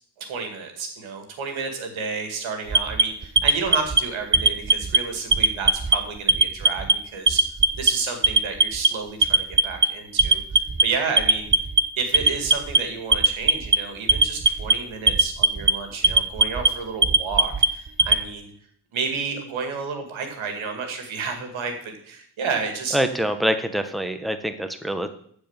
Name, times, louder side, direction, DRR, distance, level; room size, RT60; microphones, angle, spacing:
voice 1, 0.2-7.4 7.8-10.4 10.8-11.5 12.0-18.5 18.9-23.0, right 5 dB, 90° right, 5 dB, 2.2 m, -31 dB
Alarm, 2.7-4.0 4.3-5.0 5.3-6.0 6.3-6.9 7.3-7.9 8.2-8.9 9.2-9.9 10.2-10.8 11.2-11.8 12.1-12.8 13.1-13.8 14.1-14.7 15.1-15.7 16.0-16.7 17.0-18.2, right 3 dB, 25° right, 1.0 m, -18 dB
voice 2, 22.9-25.1, equal, ahead, 8 dB, 1.3 m, -25 dB
13.5 x 4.8 x 7.2 m, 0.63 s
cardioid pair, 55°, 46 cm